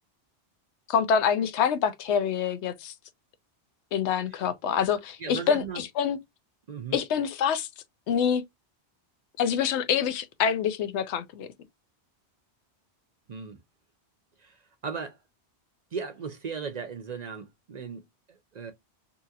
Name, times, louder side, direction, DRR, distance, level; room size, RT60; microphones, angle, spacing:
voice 1, 0.9-2.9 3.9-6.2 6.9-7.7 8.1-8.4 9.4-11.5, left 7 dB, 85° left, 0.9 m, -26 dB
voice 2, 5.2-5.8 6.7-7.0 13.3-13.6 14.4-15.2 15.9-18.7, right 6 dB, 50° right, 0.5 m, -37 dB
2.8 x 2.8 x 2.4 m
omnidirectional pair, 1.1 m